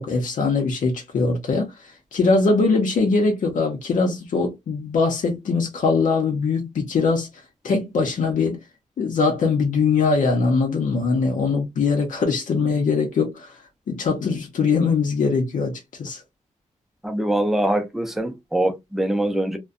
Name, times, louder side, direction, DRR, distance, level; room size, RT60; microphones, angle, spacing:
voice 1, 0.0-7.3 7.6-8.6 9.0-13.6 13.9-16.2, left 4 dB, 75° left, 0.6 m, -22 dB
voice 2, 17.0-19.6, right 1 dB, ahead, 0.5 m, -23 dB
2.6 x 2.1 x 2.4 m
wide cardioid pair, 130°, 13 cm